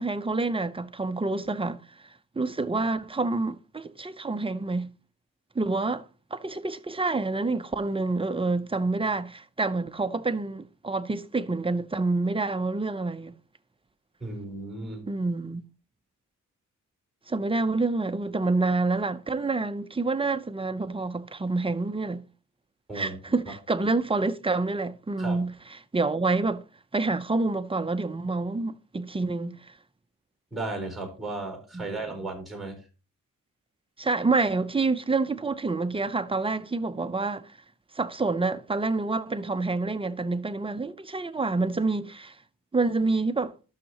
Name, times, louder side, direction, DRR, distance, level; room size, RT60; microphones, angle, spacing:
voice 1, 0.0-4.9 5.5-6.0 6.3-13.3 15.1-15.6 17.3-22.2 22.9-25.5 25.9-26.6 26.9-29.7 31.7-31.9 34.0-37.5 37.9-42.4 42.7-43.5, right 3 dB, 15° right, 0.6 m, -27 dB
voice 2, 14.2-15.1 22.9-23.2 25.2-25.4 30.5-32.8, right 2 dB, ahead, 4.0 m, -35 dB
12.5 x 6.6 x 2.9 m
cardioid pair, 100°, 32 cm